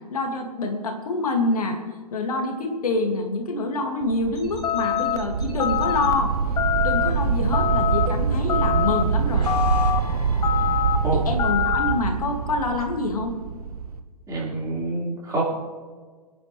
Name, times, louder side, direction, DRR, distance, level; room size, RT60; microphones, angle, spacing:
voice 1, 0.1-1.8 2.1-6.3 6.8-9.5 11.3-13.3, left 2 dB, 65° left, 3 dB, 2.3 m, -26 dB
sound 1, 4.0-14.0, right 6 dB, 70° right, 1.1 m, -25 dB
sound 2, 4.4-6.1 7.0-8.5 9.1-11.3, left 3 dB, 85° left, 3.5 m, -37 dB
sound 3, 4.6-5.2 5.6-6.1 6.6-7.1 7.5-8.1 8.5-9.0 9.5-10.0 10.4-11.0 11.4-11.9, left 10 dB, 20° left, 0.7 m, -24 dB
voice 2, 14.3-15.4, right 2 dB, 15° right, -5 dB, 4.6 m, -27 dB
28.0 x 9.8 x 3.3 m, 1.5 s
figure-of-eight pair, 110°, 20 cm